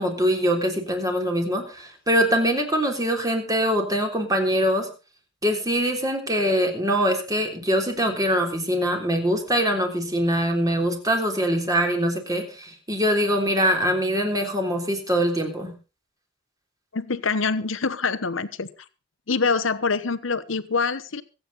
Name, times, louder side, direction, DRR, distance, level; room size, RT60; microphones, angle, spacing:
voice 1, 0.0-4.9 5.4-15.7, equal, 20° right, 4 dB, 3.5 m, -23 dB
voice 2, 16.9-18.7 19.3-21.2, left 4 dB, 85° left, 14 dB, 1.1 m, -25 dB
25.5 x 8.7 x 4.0 m, 0.32 s
head